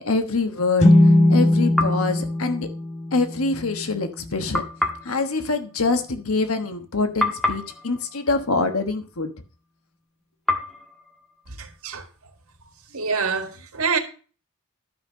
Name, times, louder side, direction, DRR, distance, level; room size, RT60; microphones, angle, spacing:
voice 1, 0.0-2.7 3.1-4.6 5.0-9.3, left 3 dB, 80° left, 1.2 m, -25 dB
sound 1, 0.8-4.4, left 1 dB, 30° left, 1.2 m, -19 dB
sound 2, 1.7-3.1 4.5-6.8 7.2-9.5 10.5-12.3, left 1 dB, ahead, 1.5 m, -31 dB
voice 2, 11.6-12.1 12.9-14.0, right 5 dB, 85° right, 1.8 m, -26 dB
12.0 x 5.5 x 6.3 m
head